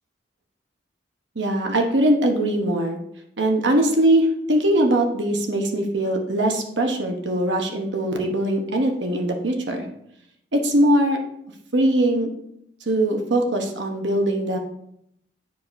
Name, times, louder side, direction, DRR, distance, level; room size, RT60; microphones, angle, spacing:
voice 1, 1.4-3.0 3.4-9.9 10.5-11.2 11.7-12.3 12.9-14.6, right 1 dB, 75° right, 3 dB, 1.0 m, -21 dB
10.5 x 4.7 x 2.6 m, 0.74 s
head